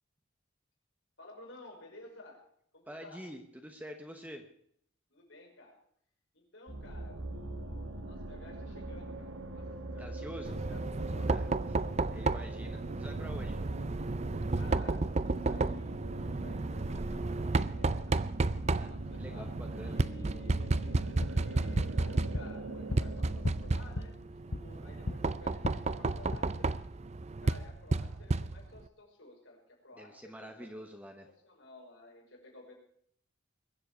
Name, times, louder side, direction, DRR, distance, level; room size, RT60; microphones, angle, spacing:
voice 1, 1.2-2.4 2.7-3.2 5.1-5.8 6.3-9.7 9.9-11.9 12.1-12.4 14.5-18.2 18.9-19.6 19.8-26.7 27.4-30.8 31.2-32.7, left 1 dB, 80° left, -1 dB, 5.7 m, -54 dB
voice 2, 2.9-4.4 10.0-10.5 11.3-13.6 18.7-20.0 30.0-31.3, equal, 10° right, 5 dB, 1.1 m, -47 dB
sound 1, 6.7-24.1, right 2 dB, 85° right, 1.5 m, -42 dB
Knock, 10.4-28.9, right 3 dB, 35° right, 0.5 m, -33 dB
sound 2, 21.0-25.2 25.5-26.4, left 2 dB, 60° left, 0.7 m, -39 dB
22.0 x 7.8 x 6.2 m, 0.67 s
head